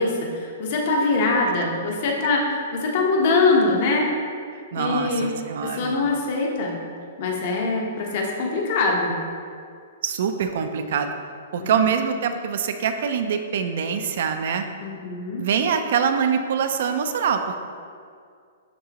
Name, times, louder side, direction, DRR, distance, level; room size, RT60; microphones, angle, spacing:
voice 1, 0.0-4.1 4.8-5.3 5.6-6.8 7.2-9.2 11.6-11.7 14.8-15.4, left 3 dB, 50° left, 0 dB, 1.1 m, -23 dB
voice 2, 4.7-5.9 10.0-11.1 11.5-14.6 15.4-17.6, right 7 dB, 60° right, 7 dB, 0.5 m, -24 dB
11.0 x 3.8 x 3.0 m, 2.2 s
hypercardioid pair, 160°, 0 cm